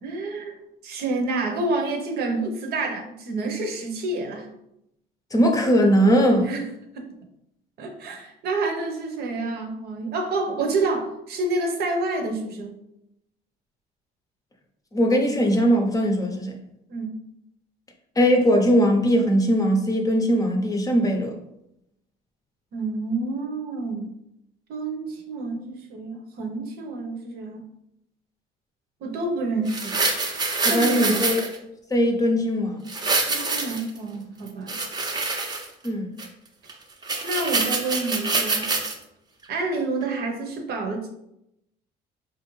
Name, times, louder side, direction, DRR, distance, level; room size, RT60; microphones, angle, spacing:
voice 1, 0.0-4.5 6.4-6.7 6.9-7.1 7.8-12.8 16.9-17.2 22.7-24.2 24.7-27.6 29.0-30.0 30.6-31.3 33.3-34.8 37.2-38.7 39.5-41.1, right 3 dB, 70° right, 3 dB, 0.8 m, -28 dB
voice 2, 5.3-6.5 14.9-16.5 18.2-21.3 30.6-31.5 31.9-32.9 35.8-36.2, equal, 20° left, 3 dB, 0.6 m, -20 dB
sound 1, 29.7-31.6 32.9-34.0 34.5-35.9 36.2-36.3 36.7-36.8 37.0-38.9 39.4-39.5, right 3 dB, 25° right, 0.6 m, -26 dB
4.2 x 2.5 x 3.1 m, 0.82 s
cardioid pair, 110°, 17 cm